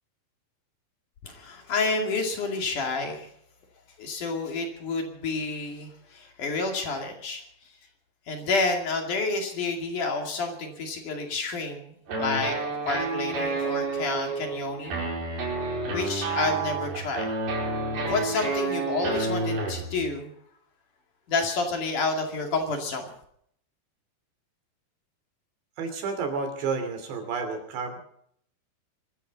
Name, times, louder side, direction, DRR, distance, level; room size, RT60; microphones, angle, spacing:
voice 1, 1.2-3.3 4.0-7.7 8.3-15.0 15.9-17.3 17.7-20.3 21.3-23.1, left 3 dB, 55° left, 3 dB, 3.6 m, -29 dB
sound 1, 12.1-20.1, right 3 dB, 70° right, 6.9 m, -30 dB
voice 2, 25.8-28.0, right 5 dB, 85° right, 6 dB, 5.1 m, -31 dB
24.0 x 14.0 x 4.1 m, 0.68 s
omnidirectional pair, 4.8 m